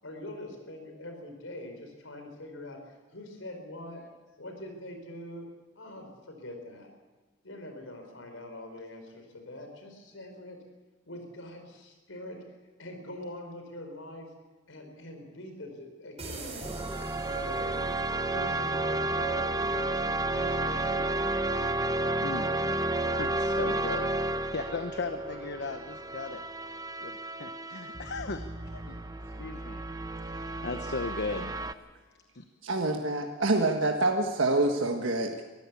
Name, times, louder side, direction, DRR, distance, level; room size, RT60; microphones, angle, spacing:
voice 1, 0.0-4.0 4.4-5.5 5.7-6.9 7.4-10.6 11.0-12.4 12.8-14.3 14.7-16.7 17.2-17.9 18.3-19.9 20.3-21.1, left 1 dB, 75° left, 4 dB, 4.9 m, -43 dB
sound 1, 16.2-18.0, right 2 dB, 35° right, 4.7 m, -42 dB
sound 2, 16.6-31.7, right 2 dB, 20° right, 0.8 m, -31 dB
voice 2, 23.0-26.4 26.7-29.0 29.4-29.8 30.2-31.5 32.3-32.4, left 3 dB, 60° left, 8 dB, 1.0 m, -37 dB
voice 3, 32.6-35.4, right 2 dB, 70° right, 3 dB, 1.5 m, -26 dB
23.0 x 14.5 x 8.4 m, 1.2 s
head